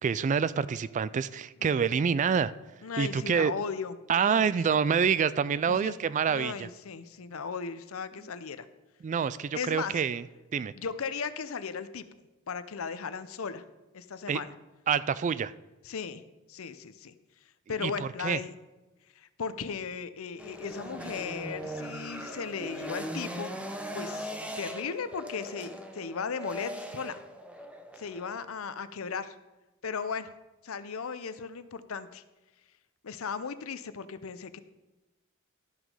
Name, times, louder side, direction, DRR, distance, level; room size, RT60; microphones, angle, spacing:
voice 1, 0.0-2.5 3.0-3.5 4.1-6.7 8.2-8.3 9.0-10.2 10.5-10.7 14.3-14.4 14.9-15.5 17.8-18.4, right 6 dB, 35° right, 17 dB, 0.3 m, -27 dB
voice 2, 2.8-4.4 5.6-5.9 6.3-8.7 9.5-9.9 10.7-12.1 12.5-13.6 13.9-14.5 15.8-16.2 16.5-17.1 17.7-18.5 19.1-23.5 23.9-27.2 28.0-29.4 29.8-30.3 30.6-32.2 33.0-34.6, left 5 dB, 80° left, 13 dB, 0.6 m, -36 dB
sound 1, 20.4-28.5, equal, 5° right, 0.7 m, -40 dB
12.5 x 5.9 x 5.5 m, 1.1 s
head